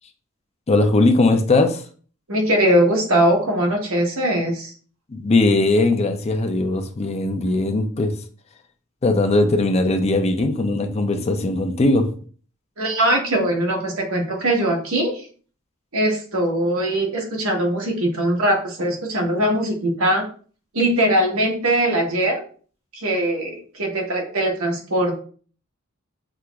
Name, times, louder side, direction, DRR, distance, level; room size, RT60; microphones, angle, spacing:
voice 1, 0.7-1.8 5.1-8.1 9.0-12.1, left 2 dB, 30° left, 6 dB, 0.5 m, -19 dB
voice 2, 2.3-4.7 12.8-15.3 15.9-20.2 20.7-22.4 22.9-25.2, right 1 dB, 85° right, 0 dB, 1.2 m, -21 dB
6.1 x 2.9 x 2.3 m, 0.42 s
head